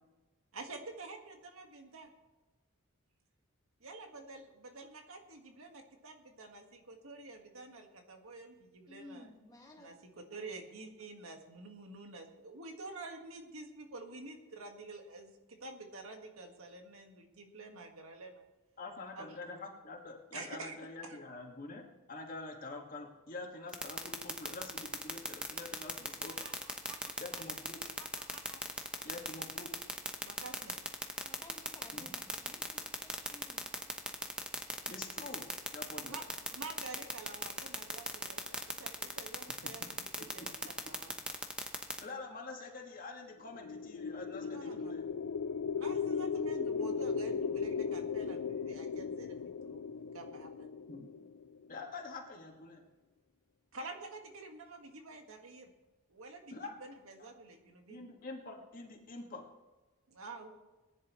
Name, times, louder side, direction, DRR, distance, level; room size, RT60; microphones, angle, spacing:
voice 1, 0.5-2.1 3.8-9.3 9.8-9.9 10.3-18.4 19.2-19.4 20.3-20.8 21.0-21.2 26.4-27.4 28.0-28.6 28.9-29.0 30.2-30.8 36.0-36.3 36.5-41.1 44.5-44.8 45.7-49.4 49.6-50.7 53.7-55.7 56.1-58.0 60.1-60.5, right 3 dB, 75° right, 3 dB, 1.7 m, -49 dB
voice 2, 8.9-9.9 31.3-33.7 35.9-36.3, left 1 dB, 15° left, 0 dB, 1.9 m, -56 dB
voice 3, 18.8-26.3 27.2-27.8 29.0-29.7 31.9-32.1 34.9-35.4 35.7-36.2 39.6-39.7 42.0-45.0 50.9-51.1 51.7-52.8 56.5-56.7 57.2-57.3 57.9-59.4, left 3 dB, 40° left, 1 dB, 1.9 m, -46 dB
sound 1, 23.7-42.0, right 1 dB, 5° right, 0.9 m, -36 dB
sound 2, 43.5-51.6, left 6 dB, 80° left, 0.4 m, -37 dB
20.0 x 10.5 x 3.1 m, 1.2 s
head